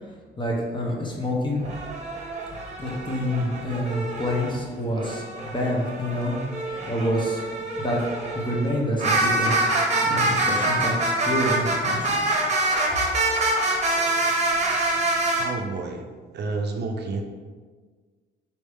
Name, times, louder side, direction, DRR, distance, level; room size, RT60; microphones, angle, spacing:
voice 1, 0.4-1.6 2.8-7.4 7.7-8.0 8.3-9.6 10.0-12.2, equal, 25° left, -2 dB, 1.1 m, -27 dB
sound 1, 1.6-4.5 4.9-15.5, right 2 dB, 35° right, 1.0 m, -25 dB
voice 2, 15.4-16.0 16.3-17.2, right 3 dB, 60° right, 3 dB, 0.5 m, -29 dB
4.2 x 3.2 x 3.5 m, 1.5 s
cardioid pair, 90°, 20 cm